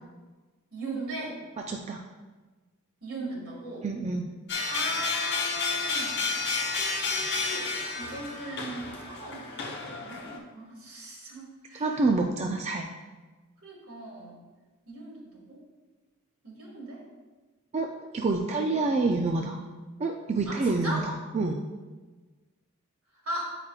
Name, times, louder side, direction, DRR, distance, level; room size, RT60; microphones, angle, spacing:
voice 1, 0.7-1.4 3.0-3.9 4.7-6.2 6.8-7.7 7.9-12.0 13.6-14.4 14.9-15.6 16.4-17.0 20.5-21.0 23.2-23.6, right 1 dB, 70° right, -4 dB, 2.0 m, -38 dB
voice 2, 1.7-2.0 3.8-4.3 11.8-12.9 17.7-17.9 18.1-19.6 20.0-21.0 21.3-21.6, right 3 dB, 30° right, 1 dB, 0.3 m, -27 dB
sound 1, 4.5-10.4, left 4 dB, 50° left, 1.0 m, -31 dB
8.6 x 4.9 x 2.4 m, 1.3 s
head